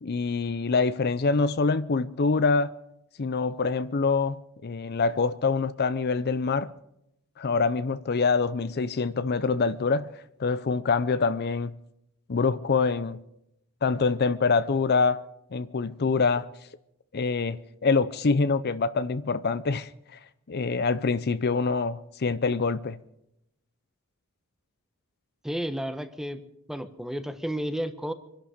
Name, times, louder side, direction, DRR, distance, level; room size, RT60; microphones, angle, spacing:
voice 1, 0.0-2.7 3.2-6.7 7.4-10.1 10.4-11.8 12.3-13.2 13.8-15.2 15.5-16.5 17.1-19.9 20.5-23.0, left 4 dB, 45° left, 0.5 m, -25 dB
voice 2, 25.4-26.4 26.7-28.1, equal, ahead, 1.0 m, -32 dB
25.0 x 11.5 x 5.0 m
head